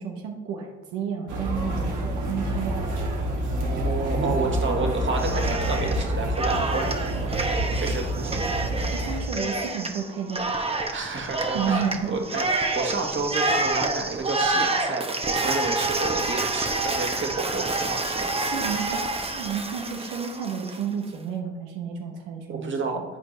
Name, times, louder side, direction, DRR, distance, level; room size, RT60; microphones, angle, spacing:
voice 1, 0.0-2.9 8.9-10.6 11.5-12.2 18.4-23.0, right 7 dB, 85° right, 2 dB, 0.9 m, -31 dB
sound 1, 1.3-9.2, right 1 dB, 65° right, 1.7 m, -27 dB
voice 2, 3.6-6.9 7.7-8.5 10.9-18.3 22.5-23.0, right 3 dB, 35° right, 2 dB, 1.7 m, -30 dB
Cheering, 5.2-6.0 6.3-20.8, right 2 dB, 20° right, 1.0 m, -28 dB
11.0 x 4.4 x 3.2 m, 1.1 s
supercardioid pair, 70°, 32 cm